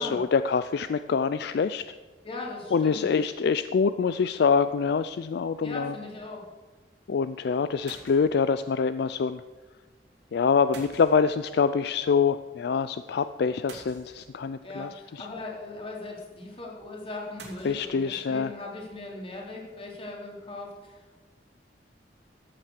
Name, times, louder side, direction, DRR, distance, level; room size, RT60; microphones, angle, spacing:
voice 1, 0.0-1.8 2.7-5.9 7.1-9.4 10.3-15.3 17.6-18.5, left 5 dB, 65° left, 12 dB, 0.4 m, -25 dB
voice 2, 2.2-3.1 5.6-6.4 14.6-21.2, left 2 dB, 35° left, -1 dB, 2.8 m, -39 dB
sound 1, 7.9-8.5 10.7-11.7 13.7-14.6 17.4-17.8, right 3 dB, 80° right, 3.2 m, -48 dB
13.5 x 7.5 x 6.6 m, 1.3 s
head